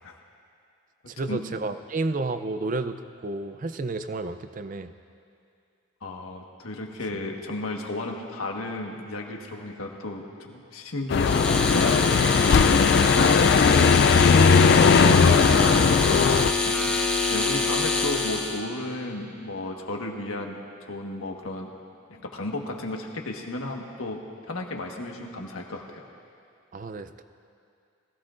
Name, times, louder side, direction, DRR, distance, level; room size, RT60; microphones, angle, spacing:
voice 1, 1.1-4.9 14.3-16.4 26.7-27.2, right 3 dB, 40° right, 11 dB, 0.4 m, -32 dB
voice 2, 6.0-12.1 12.6-13.7 16.6-17.0 17.3-20.6 20.9-21.7 22.1-26.0, left 2 dB, 85° left, 1 dB, 1.4 m, -34 dB
sound 1, 11.1-16.5, left 5 dB, 50° left, 0.3 m, -18 dB
sound 2, 11.1-18.6, left 4 dB, 5° left, 0.9 m, -25 dB
21.0 x 15.5 x 2.5 m, 2.4 s
head